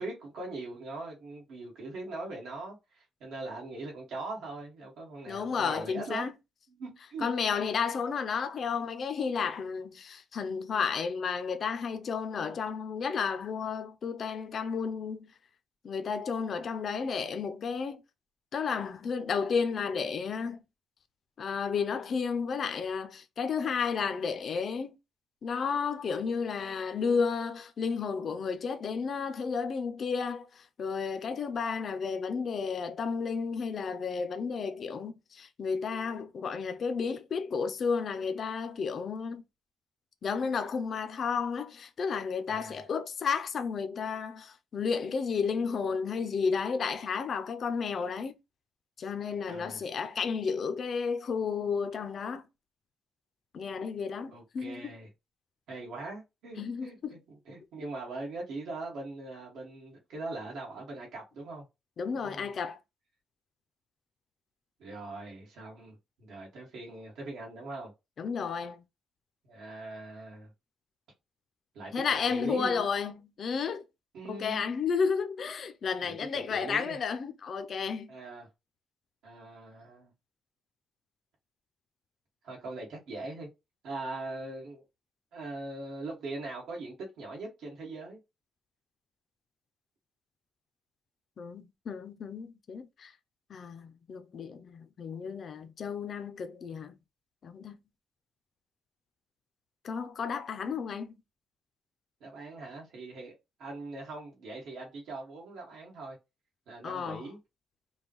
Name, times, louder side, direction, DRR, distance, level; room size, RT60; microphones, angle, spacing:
voice 1, 0.0-6.3 6.7-7.3 42.5-42.8 49.5-49.8 54.3-55.1 55.7-61.7 62.1-62.5 64.8-67.9 69.4-70.5 71.7-72.8 74.1-74.6 76.0-77.0 78.1-78.5 79.2-80.1 82.4-83.5 83.8-84.8 85.3-88.2 102.2-103.3 103.6-106.2 106.7-107.4, right 2 dB, 75° right, 1.7 m, -41 dB
voice 2, 5.3-6.3 7.2-15.3 15.8-18.0 18.5-20.6 21.4-24.9 25.4-39.4 40.2-48.4 49.0-52.4 53.5-54.9 56.6-57.1 62.0-62.8 68.2-68.8 71.9-73.8 74.3-78.1 91.4-93.1 93.5-96.9 97.4-97.8 99.8-101.2 106.8-107.2, left 5 dB, 40° left, 0.4 m, -32 dB
5.2 x 2.2 x 3.0 m
cardioid pair, 175°, 0 cm